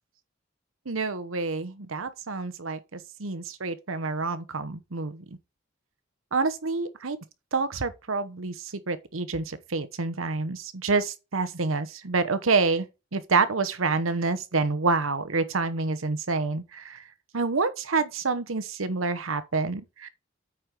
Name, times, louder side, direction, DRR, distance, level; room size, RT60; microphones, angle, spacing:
voice 1, 0.9-5.2 6.3-7.2 7.5-8.5 8.9-12.9 13.1-17.0 17.3-20.1, right 4 dB, 90° right, 1.0 m, -27 dB
8.6 x 4.5 x 5.1 m
head